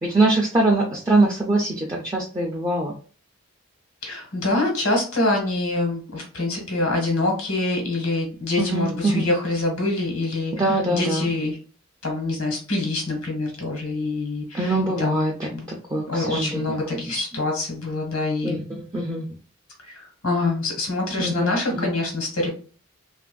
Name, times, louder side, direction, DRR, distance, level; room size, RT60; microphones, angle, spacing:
voice 1, 0.0-2.9 8.6-9.3 10.6-11.3 14.5-17.3 18.4-19.3 21.2-21.9, right 2 dB, 15° right, -2 dB, 0.3 m, -23 dB
voice 2, 4.0-10.5 10.9-11.6 12.0-15.2 15.5-15.7 16.1-18.6 19.8-22.5, left 2 dB, 85° left, 1 dB, 1.2 m, -25 dB
2.8 x 2.5 x 2.2 m, 0.38 s
head